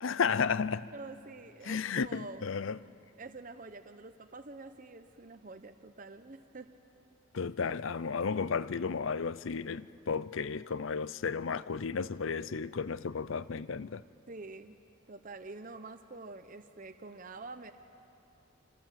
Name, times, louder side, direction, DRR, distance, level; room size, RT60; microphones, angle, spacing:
voice 1, 0.0-0.9 1.6-2.8 7.3-14.0, left 5 dB, 65° left, 0.5 m, -33 dB
voice 2, 0.9-2.4 3.2-6.7 14.3-14.8 15.1-17.7, right 3 dB, 40° right, 0.8 m, -47 dB
27.5 x 26.0 x 7.5 m
head